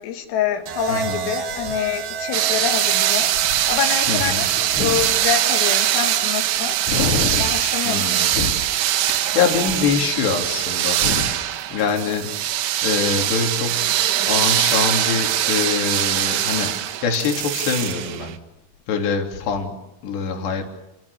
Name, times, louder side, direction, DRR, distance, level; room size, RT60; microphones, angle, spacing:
voice 1, 0.0-3.3 3.7-6.8 7.4-8.1, left 9 dB, 90° left, 4 dB, 4.6 m, -26 dB
sound 1, 0.7-8.8 10.0-10.4, right 7 dB, 55° right, 3.0 m, -34 dB
voice 2, 0.9-1.3 4.1-4.4 4.7-5.0 6.9-7.5 7.9-8.5 8.9-11.3 11.7-12.6 12.8-18.3 18.9-20.7, left 5 dB, 60° left, 3 dB, 5.1 m, -24 dB
sound 2, 2.3-18.4, right 12 dB, 75° right, 3.8 m, -22 dB
30.0 x 22.0 x 6.9 m, 0.92 s
omnidirectional pair, 5.8 m